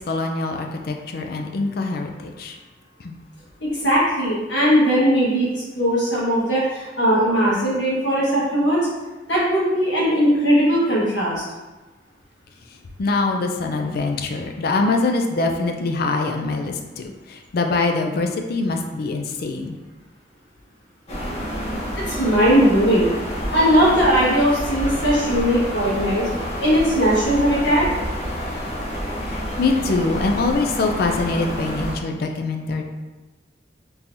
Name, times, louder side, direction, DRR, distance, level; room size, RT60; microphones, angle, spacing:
voice 1, 0.1-2.6 3.0-3.2 13.0-19.7 29.3-32.8, left 3 dB, 55° left, 3 dB, 0.4 m, -24 dB
voice 2, 3.6-8.9 9.3-11.4 22.0-23.1 23.5-26.3 26.6-27.9, equal, 80° left, -7 dB, 1.4 m, -19 dB
sound 1, 21.1-31.9, equal, 35° left, 0.8 m, -28 dB
3.8 x 2.9 x 2.6 m, 1.2 s
head